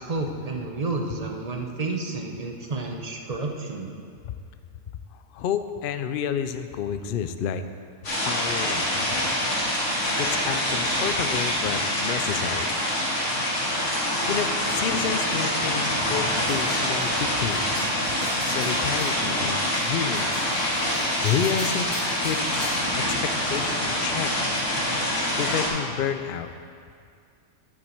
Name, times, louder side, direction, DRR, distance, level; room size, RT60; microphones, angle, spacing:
voice 1, 0.0-3.9, right 3 dB, 35° right, 2 dB, 0.7 m, -30 dB
voice 2, 5.1-7.6 8.1-9.4 10.2-12.8 14.2-17.8 18.1-18.2 18.5-20.3 21.2-24.3 25.4-26.5, left 8 dB, 80° left, 9 dB, 0.4 m, -30 dB
sound 1, 8.0-25.7, left 1 dB, 55° left, 2.4 m, -25 dB
sound 2, 16.5-22.9, equal, ahead, 2.6 m, -41 dB
11.0 x 7.6 x 4.5 m, 2.3 s
omnidirectional pair, 1.5 m